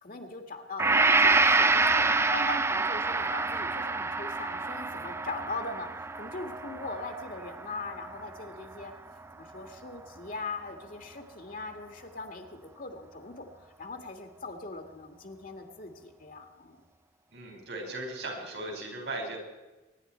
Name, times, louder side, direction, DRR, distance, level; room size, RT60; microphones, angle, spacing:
voice 1, 0.0-2.1 2.3-8.9 9.4-16.8, left 3 dB, 50° left, 5 dB, 1.9 m, -40 dB
Gong, 0.8-8.8, right 3 dB, 15° right, 0.4 m, -27 dB
voice 2, 17.3-19.4, right 2 dB, 75° right, 1 dB, 4.9 m, -37 dB
23.5 x 11.0 x 4.4 m, 1.1 s
head